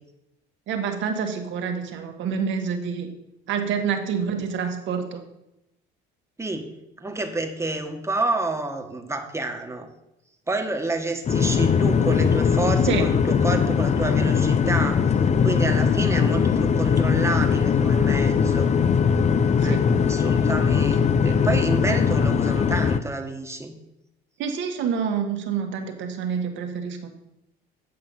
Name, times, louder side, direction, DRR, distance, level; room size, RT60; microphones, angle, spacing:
voice 1, 0.7-3.1 3.5-5.2 12.9-13.1 19.6-19.8 24.4-27.1, right 6 dB, 65° right, 5 dB, 1.6 m, -27 dB
voice 2, 6.4-6.7 7.0-9.9 10.5-15.0 15.4-18.7 19.6-23.8, right 2 dB, 15° right, 4 dB, 1.6 m, -29 dB
sound 1, 11.3-23.0, left 6 dB, 35° left, 0.7 m, -20 dB
9.3 x 5.8 x 5.5 m, 0.88 s
supercardioid pair, 80°, 21 cm